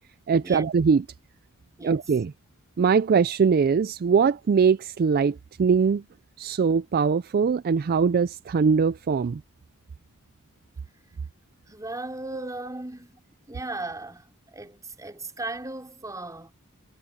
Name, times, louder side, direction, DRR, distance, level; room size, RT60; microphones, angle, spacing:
voice 1, 0.3-1.0 1.8-2.3 2.8-6.0 6.4-9.4 12.3-12.5, right 5 dB, 45° right, 0.4 m, -22 dB
voice 2, 11.7-13.2 13.5-16.5, right 2 dB, 15° right, 4.0 m, -37 dB
head